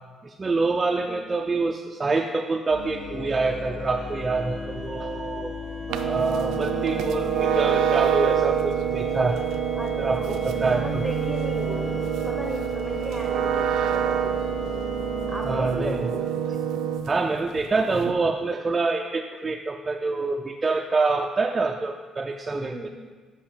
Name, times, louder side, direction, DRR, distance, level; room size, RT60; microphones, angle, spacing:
voice 1, 0.2-5.6 6.0-9.4 10.0-11.0 15.5-16.0 17.1-22.9, right 3 dB, 25° right, 3 dB, 0.4 m, -26 dB
sound 1, 2.7-15.7, left 2 dB, 35° left, 2.3 m, -35 dB
sound 2, 5.9-17.2 17.5-18.1, right 9 dB, 90° right, 0.4 m, -26 dB
voice 2, 6.4-6.8 9.8-14.4 15.3-16.3 22.6-22.9, right 1 dB, ahead, 3 dB, 1.0 m, -35 dB
7.4 x 5.4 x 4.4 m, 1.4 s
cardioid pair, 105°, 0 cm